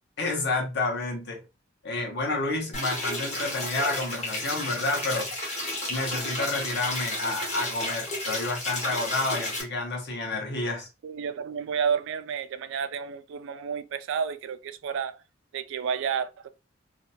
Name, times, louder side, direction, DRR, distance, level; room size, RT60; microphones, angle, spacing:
voice 1, 0.2-1.5 1.8-5.3 5.9-10.9, left 2 dB, 60° left, 0.9 m, -29 dB
sound 1, 2.7-9.6, left 1 dB, 35° left, 1.0 m, -32 dB
voice 2, 11.0-15.2 15.5-16.5, right 7 dB, 65° right, 0.3 m, -31 dB
2.7 x 2.2 x 2.7 m
head